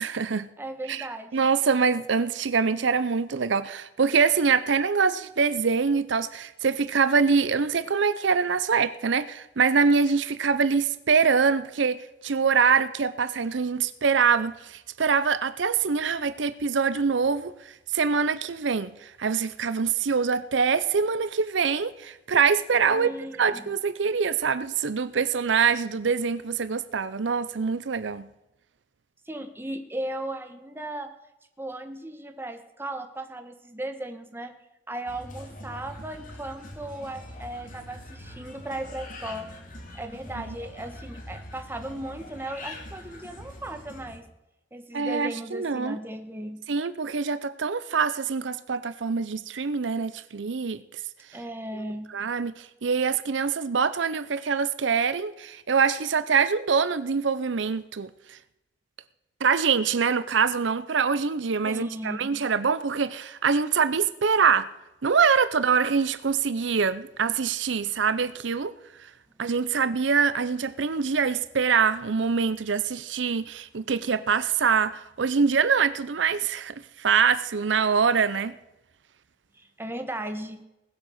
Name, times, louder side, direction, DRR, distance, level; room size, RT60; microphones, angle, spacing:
voice 1, 0.0-0.5 0.9-1.1 1.3-23.1 23.4-28.3 40.4-40.5 44.9-46.0 46.7-50.8 52.1-58.4 59.4-64.7 65.0-68.7 69.0-69.1 69.4-78.6, right 5 dB, 75° right, 0.6 m, -24 dB
voice 2, 0.6-1.4 22.8-23.7 29.3-31.1 31.6-34.5 34.9-39.5 39.9-44.3 44.7-46.6 51.3-52.1 61.6-62.3 79.5-80.6, right 1 dB, 10° right, 1.4 m, -36 dB
sound 1, 35.1-44.2, left 1 dB, 45° left, 2.6 m, -43 dB
19.5 x 7.7 x 6.5 m
head